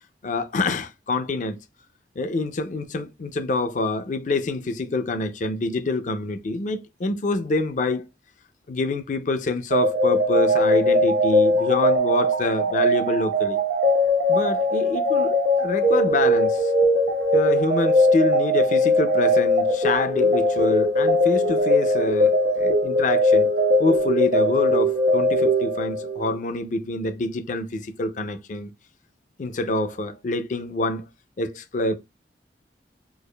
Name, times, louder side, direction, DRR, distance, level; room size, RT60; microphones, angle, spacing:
voice 1, 0.2-1.6 2.2-8.0 8.7-13.6 14.3-16.7 17.3-23.5 23.8-28.7 29.4-31.0 31.4-32.0, left 2 dB, 45° left, 0.4 m, -26 dB
sound 1, 9.7-26.3, left 1 dB, 85° right, 1.2 m, -20 dB
4.6 x 2.4 x 2.2 m
head